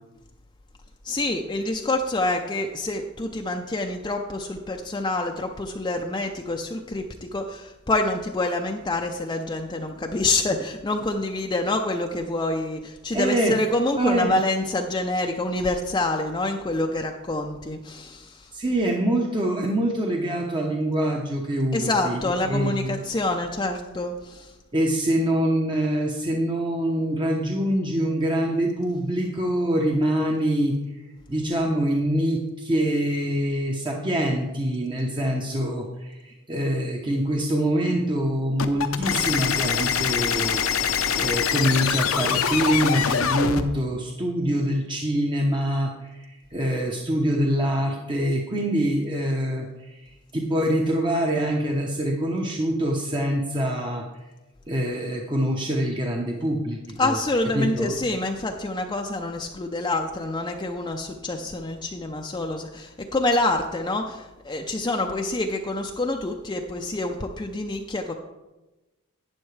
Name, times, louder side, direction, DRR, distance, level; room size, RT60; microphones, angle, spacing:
voice 1, 1.0-18.5 21.7-24.5 39.0-39.1 57.0-68.1, left 2 dB, 20° left, 2 dB, 0.5 m, -27 dB
voice 2, 13.1-13.6 14.0-14.3 18.5-23.0 24.7-30.8 31.3-54.0 54.7-57.2 57.5-58.0, right 1 dB, 25° right, 0 dB, 0.9 m, -25 dB
sound 1, 38.6-43.6, left 7 dB, 70° left, 0.7 m, -24 dB
11.5 x 9.0 x 3.3 m, 1.1 s
head